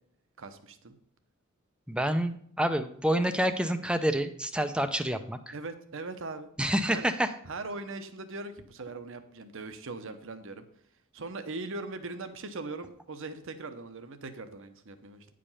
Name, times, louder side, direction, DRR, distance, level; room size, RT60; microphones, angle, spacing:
voice 1, 0.4-0.9 5.5-6.5 6.9-7.1 7.4-10.7 11.1-15.3, right 3 dB, 65° right, 9 dB, 0.9 m, -40 dB
voice 2, 1.9-5.5 6.6-7.3, equal, 5° right, 9 dB, 0.6 m, -28 dB
9.8 x 5.1 x 5.6 m, 0.65 s
head